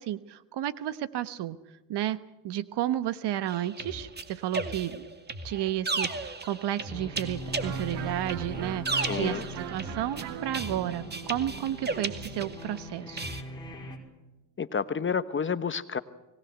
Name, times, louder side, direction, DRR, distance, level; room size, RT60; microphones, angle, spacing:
voice 1, 0.0-1.6 1.9-2.2 2.4-5.1 5.4-13.3, right 12 dB, 55° right, 14 dB, 1.3 m, -32 dB
sound 1, 3.5-12.8 13.2-13.4, right 3 dB, 20° right, 2.2 m, -35 dB
sound 2, 6.9-14.0, right 1 dB, 10° left, 5.0 m, -40 dB
Electric guitar, 7.6-13.2, right 12 dB, 80° right, 1.5 m, -43 dB
voice 2, 9.0-9.4 14.6-16.0, left 6 dB, 25° left, 13 dB, 1.1 m, -30 dB
25.0 x 19.0 x 8.2 m, 1.1 s
supercardioid pair, 85°, 48 cm